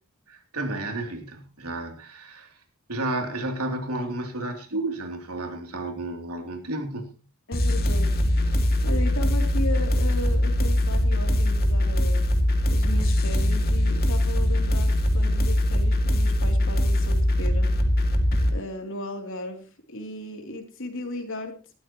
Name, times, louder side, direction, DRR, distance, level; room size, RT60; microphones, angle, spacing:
voice 1, 0.3-2.6 2.9-7.1, right 2 dB, 90° right, 4 dB, 3.1 m, -32 dB
voice 2, 7.5-8.1 8.8-12.2 12.7-17.7 18.5-21.6, left 1 dB, 60° left, 4 dB, 3.2 m, -35 dB
sound 1, 7.5-18.5, left 1 dB, 45° left, 2.3 m, -22 dB
18.5 x 13.5 x 3.1 m, 0.35 s
head